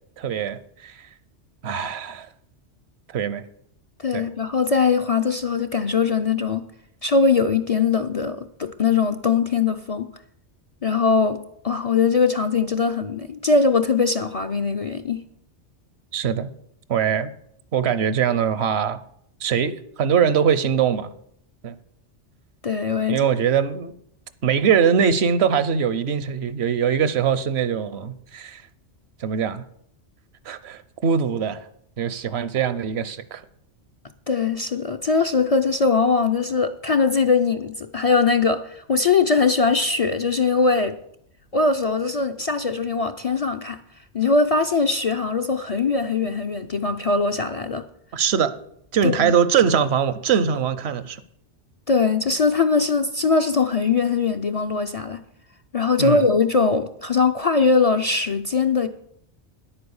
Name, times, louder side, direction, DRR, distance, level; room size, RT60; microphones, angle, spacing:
voice 1, 0.2-1.1 1.6-2.3 3.1-3.4 4.1-4.3 16.1-16.5 16.9-17.3 17.7-19.0 19.4-21.1 21.6-21.7 23.1-23.9 24.4-28.6 29.2-29.6 30.4-31.7 32.0-33.4 48.1-48.6 48.9-51.2 56.0-56.2, right 7 dB, 70° right, 1.0 m, -22 dB
voice 2, 4.0-6.7 7.0-10.1 10.8-15.2 22.6-23.2 34.3-40.9 41.5-43.8 44.1-47.8 49.0-49.3 51.9-55.2 55.7-58.9, left 4 dB, 40° left, 0.5 m, -21 dB
10.0 x 8.7 x 7.0 m
omnidirectional pair, 1.2 m